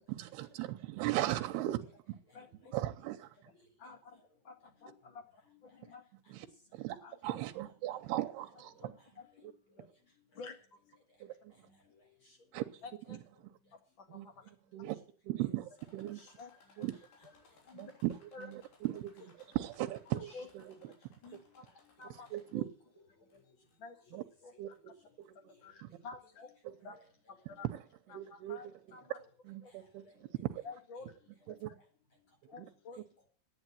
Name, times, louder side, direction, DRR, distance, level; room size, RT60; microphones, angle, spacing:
voice 1, 0.0-2.2 2.7-3.5 6.3-6.5 6.7-7.0 7.2-9.0 9.4-9.5 11.2-11.7 12.5-12.7 13.1-13.5 14.1-15.0 15.2-16.2 16.8-17.0 17.7-20.9 21.3-21.4 22.3-22.7 24.1-24.2 24.6-25.4 25.8-25.9 26.6-26.7 27.6-27.8 28.1-28.6 28.9-29.0 29.4-30.6 31.5-31.7 32.6-32.7, right 15 dB, 85° right, 6 dB, 2.8 m, -38 dB
voice 2, 2.3-2.7 3.8-4.5 4.8-5.2 5.6-6.0 7.0-7.2 8.8-9.3 9.8-9.9 10.3-10.5 12.8-13.2 13.7-14.4 16.4-16.5 16.8-16.9 17.6-17.9 18.3-18.5 20.3-20.5 21.2-21.6 22.0-22.3 22.5-22.6 23.8-24.5 25.6-26.5 26.8-26.9 27.5-27.7 28.1-28.7 28.9-29.2 29.6-29.7 30.1-30.2 30.6-31.1 32.5-33.0, left 4 dB, 45° left, 6 dB, 1.6 m, -50 dB
voice 3, 5.4-5.8 6.4-6.5 8.1-8.2 8.8-8.9 9.3-9.5 10.4-10.5 11.6-12.4 15.4-15.5 16.1-16.3 17.1-17.4 17.8-18.0 18.5-18.6 19.8-20.4 20.8-20.9 21.5-21.6 21.8-21.9 23.2-23.5 24.1-24.2 25.0-25.1 25.5-25.6 26.4-26.5 26.9-27.0 27.5-27.7 29.7-29.8 30.1-30.6 31.0-31.1 31.5-31.8 32.5-32.6, left 3 dB, 30° left, 2 dB, 4.8 m, -64 dB
sound 1, 15.8-22.8 23.3-23.9 24.7-24.8 25.2-25.3, left 4 dB, 75° left, 5.2 m, -66 dB
11.5 x 9.0 x 9.1 m, 0.44 s
omnidirectional pair, 4.6 m